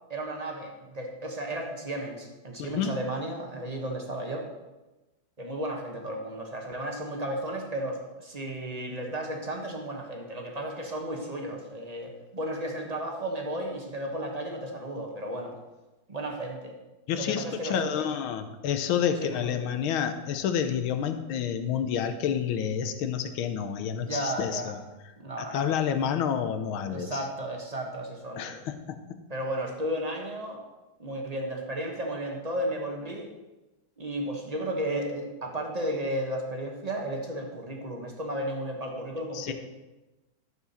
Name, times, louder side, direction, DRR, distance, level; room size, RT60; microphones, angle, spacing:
voice 1, 0.1-4.5 5.4-15.6 16.1-16.7 17.1-18.0 19.1-19.5 24.0-24.7 25.2-25.7 26.9-28.6 29.3-30.6 31.0-33.3 34.0-39.5, right 1 dB, 25° right, 2 dB, 0.9 m, -34 dB
voice 2, 2.6-3.0 17.1-24.8 25.4-27.2 28.4-29.2 39.3-39.5, left 8 dB, 90° left, 9 dB, 1.6 m, -29 dB
10.5 x 7.0 x 4.2 m, 1.1 s
omnidirectional pair, 2.2 m